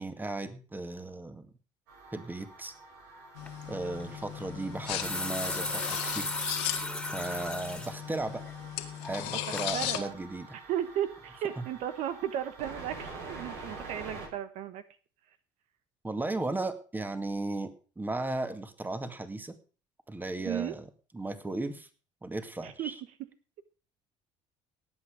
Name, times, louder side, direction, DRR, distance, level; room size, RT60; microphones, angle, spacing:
voice 1, 0.0-1.5 2.1-2.7 3.7-6.3 7.1-8.5 9.1-10.6 11.6-11.7 16.0-19.6 20.1-20.9 21.1-21.9 22.2-23.0, right 2 dB, 15° right, 9 dB, 2.1 m, -36 dB
sound 1, 1.9-14.3, right 3 dB, 90° right, 6.4 m, -47 dB
sound 2, 3.4-10.0, left 13 dB, 90° left, 1.9 m, -37 dB
sound 3, 3.5-3.6 4.6-7.9 8.4-8.5 9.0-9.3 9.6-9.7, left 1 dB, 5° left, 2.7 m, -36 dB
voice 2, 9.7-10.1 10.7-14.8 20.4-20.7 22.6-22.9, right 10 dB, 70° right, 11 dB, 1.3 m, -34 dB
18.0 x 8.4 x 5.0 m, 0.38 s
supercardioid pair, 85°, 12 cm